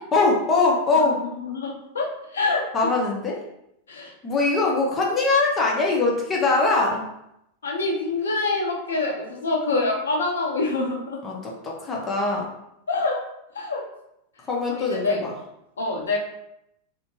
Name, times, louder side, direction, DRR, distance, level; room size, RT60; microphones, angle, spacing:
voice 1, 0.1-1.2 2.7-3.4 4.2-7.0 11.2-12.5 14.5-15.3, left 3 dB, 20° left, -2 dB, 0.7 m, -22 dB
voice 2, 1.4-2.1 2.3-2.6 3.9-4.1 7.6-11.2 12.9-13.2 13.5-13.8 14.7-15.2 15.8-16.2, left 3 dB, 70° left, -1 dB, 0.6 m, -25 dB
2.6 x 2.1 x 2.9 m, 0.81 s
figure-of-eight pair, 90°, 0 cm